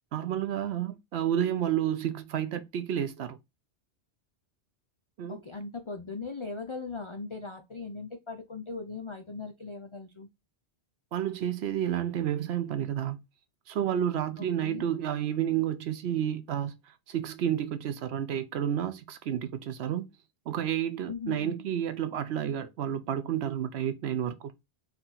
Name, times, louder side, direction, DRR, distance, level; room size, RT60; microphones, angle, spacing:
voice 1, 0.1-3.4 5.2-5.4 11.1-13.2 13.7-16.7 17.1-20.0 20.5-24.5, right 10 dB, 70° right, 0.8 m, -30 dB
voice 2, 5.3-10.3 14.4-14.9 21.1-21.7, left 4 dB, 50° left, 0.3 m, -39 dB
4.3 x 2.6 x 3.9 m
omnidirectional pair, 1.2 m